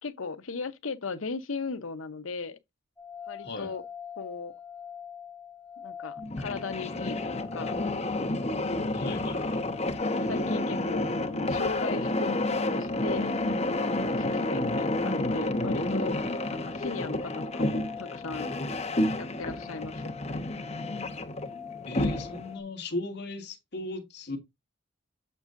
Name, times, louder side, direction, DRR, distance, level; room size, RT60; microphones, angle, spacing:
voice 1, 0.0-2.6 3.3-3.8 4.2-4.5 5.8-7.7 8.4-8.7 10.2-13.3 14.0-16.2 16.5-18.5 19.2-20.1, left 4 dB, 85° left, 0.9 m, -37 dB
sound 1, 3.0-22.6, left 8 dB, 5° left, 1.4 m, -45 dB
voice 2, 3.4-3.7 8.9-9.6 21.9-24.4, left 2 dB, 55° left, 2.4 m, -36 dB
sound 2, 6.2-22.5, left 1 dB, 30° left, 1.1 m, -30 dB
7.9 x 7.3 x 2.6 m
head